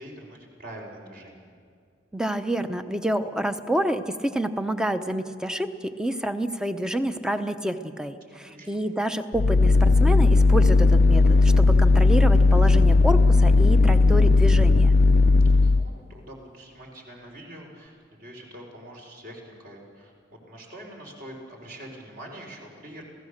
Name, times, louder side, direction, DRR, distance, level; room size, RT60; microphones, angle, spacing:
voice 1, 0.0-1.5 8.3-8.8 15.6-23.0, right 1 dB, 50° right, 0 dB, 4.2 m, -44 dB
voice 2, 2.1-14.9, right 1 dB, 5° right, 9 dB, 0.7 m, -28 dB
sound 1, 9.3-15.9, left 3 dB, 55° left, 0.5 m, -17 dB
27.5 x 16.5 x 6.6 m, 2.2 s
head